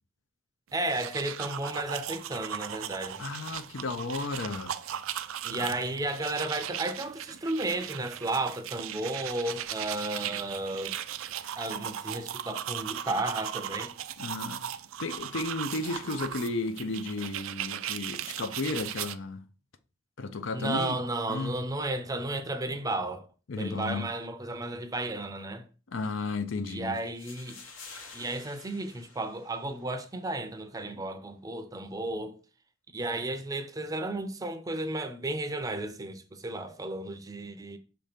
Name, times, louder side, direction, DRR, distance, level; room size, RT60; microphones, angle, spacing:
voice 1, 0.7-3.2 5.4-11.0 11.6-13.9 20.5-23.3 23.6-25.7 26.7-27.6 28.1-32.4 32.9-37.8, right 2 dB, 15° right, 0.5 m, -33 dB
sound 1, 0.8-19.2, right 10 dB, 85° right, 0.4 m, -37 dB
voice 2, 3.2-4.7 14.2-14.6 15.0-19.4 20.2-20.9 21.3-21.5 23.5-24.1 25.9-26.9, left 3 dB, 70° left, 0.6 m, -33 dB
sound 2, 26.9-30.0, left 4 dB, 85° left, 1.2 m, -49 dB
6.3 x 2.9 x 5.1 m
head